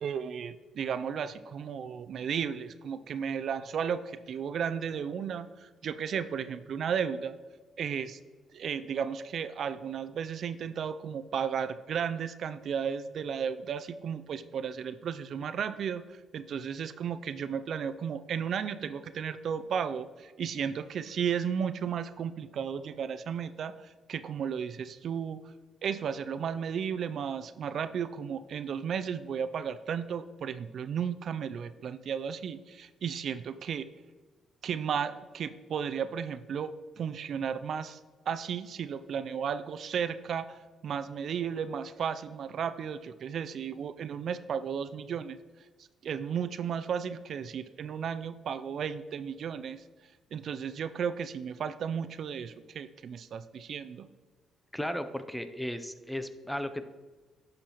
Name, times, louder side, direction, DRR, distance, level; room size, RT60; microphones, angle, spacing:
voice 1, 0.0-7.3 7.8-8.2 8.5-25.4 25.8-33.9 34.6-38.0 38.3-45.4 46.0-49.8 50.3-54.1, right 7 dB, 60° right, 12 dB, 0.3 m, -34 dB
voice 2, 54.7-56.8, equal, 5° left, 10 dB, 0.6 m, -35 dB
10.0 x 6.4 x 3.0 m, 1.3 s
cardioid pair, 90°, 0 cm